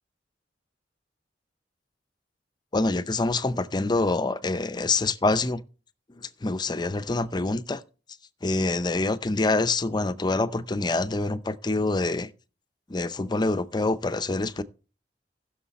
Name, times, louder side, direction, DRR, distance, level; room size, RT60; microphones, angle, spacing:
voice 1, 2.7-5.6 6.1-7.8 8.4-12.3 12.9-14.6, left 2 dB, 25° left, 0.6 m, -26 dB
15.5 x 6.5 x 4.1 m
head